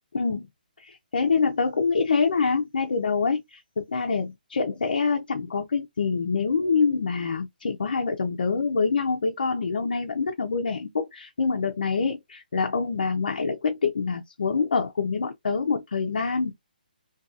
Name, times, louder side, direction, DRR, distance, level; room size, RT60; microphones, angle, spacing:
voice 1, 0.1-0.5 0.8-16.5, left 5 dB, 60° left, 0.5 m, -25 dB
2.7 x 2.3 x 2.4 m
hypercardioid pair, 180°, 5 cm